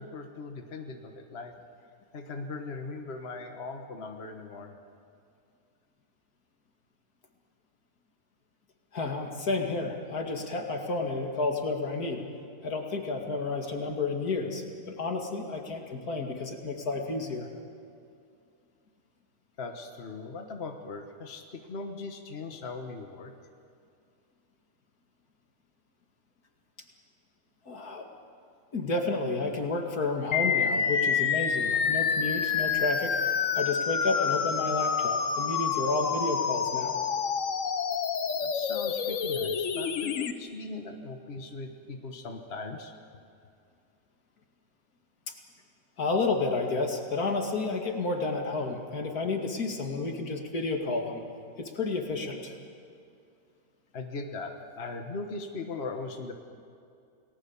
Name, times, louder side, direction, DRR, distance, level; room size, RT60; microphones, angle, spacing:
voice 1, 0.0-1.5 2.1-4.8 19.6-23.3 38.4-42.9 53.9-56.3, left 3 dB, 45° left, 4 dB, 1.6 m, -39 dB
voice 2, 8.9-12.2 12.6-17.5 27.7-28.0 28.7-33.2 33.5-37.0 46.0-51.2 51.6-52.5, left 3 dB, 75° left, 2 dB, 2.7 m, -31 dB
sound 1, 30.3-40.3, left 6 dB, 60° left, 1.4 m, -28 dB
29.0 x 19.0 x 7.2 m, 2.5 s
omnidirectional pair, 1.6 m